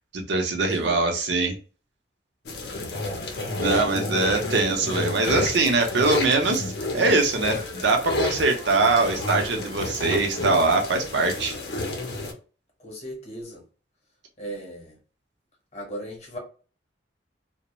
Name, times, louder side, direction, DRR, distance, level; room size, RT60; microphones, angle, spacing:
voice 1, 0.1-1.6 3.6-11.5, right 3 dB, 70° right, 0.6 m, -22 dB
sound 1, 2.5-12.3, left 2 dB, 60° left, 0.5 m, -30 dB
voice 2, 3.6-4.3 12.8-13.6 14.4-15.0 15.7-16.4, equal, 35° left, 0.8 m, -37 dB
2.3 x 2.0 x 2.9 m
head